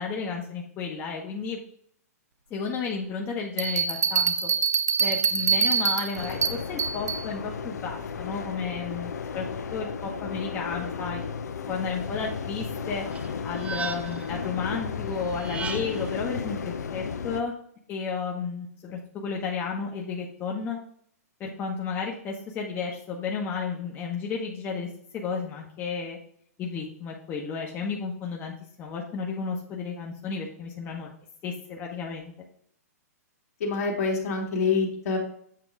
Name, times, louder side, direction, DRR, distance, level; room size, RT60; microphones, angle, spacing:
voice 1, 0.0-1.6 2.5-4.5 5.0-9.4 9.7-11.2 11.7-13.1 13.4-17.5 17.9-20.8 21.4-24.9 25.1-26.2 26.6-31.1 31.4-32.3, left 5 dB, 25° left, -1 dB, 1.0 m, -33 dB
Bell, 3.6-7.2, right 6 dB, 85° right, 0.7 m, -25 dB
sound 1, 6.1-17.4, left 6 dB, 85° left, 0.6 m, -34 dB
sound 2, 13.1-14.3 15.3-16.2, right 5 dB, 15° right, 0.5 m, -36 dB
voice 2, 33.6-35.2, left 4 dB, 65° left, 0 dB, 2.0 m, -26 dB
7.6 x 2.9 x 4.7 m, 0.64 s
hypercardioid pair, 130°, 9 cm